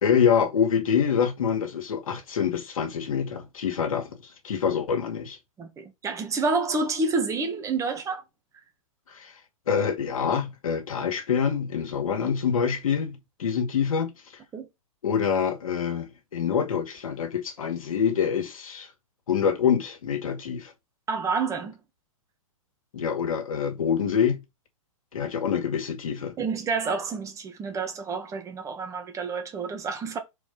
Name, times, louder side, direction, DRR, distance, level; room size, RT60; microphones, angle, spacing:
voice 1, 0.0-4.2 4.4-5.4 9.1-9.3 9.7-14.1 15.0-18.9 19.3-20.7 22.9-24.4 25.1-26.3, left 7 dB, 80° left, 2.1 m, -26 dB
voice 2, 5.6-8.2 14.5-14.7 21.1-21.8 26.4-30.2, right 4 dB, 15° right, 1.5 m, -29 dB
5.3 x 4.6 x 5.2 m
hypercardioid pair, 130°, 18 cm